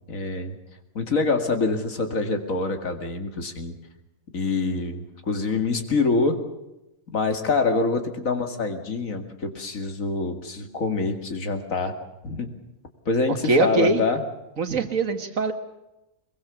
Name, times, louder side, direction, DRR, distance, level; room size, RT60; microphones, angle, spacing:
voice 1, 0.1-0.6 0.9-3.8 4.3-6.4 7.1-11.9 12.2-12.5 13.1-14.2, left 3 dB, 85° left, 6 dB, 2.6 m, -25 dB
voice 2, 13.4-14.0 14.6-15.5, right 3 dB, 75° right, 7 dB, 2.1 m, -22 dB
22.0 x 22.0 x 7.1 m, 0.93 s
omnidirectional pair, 1.4 m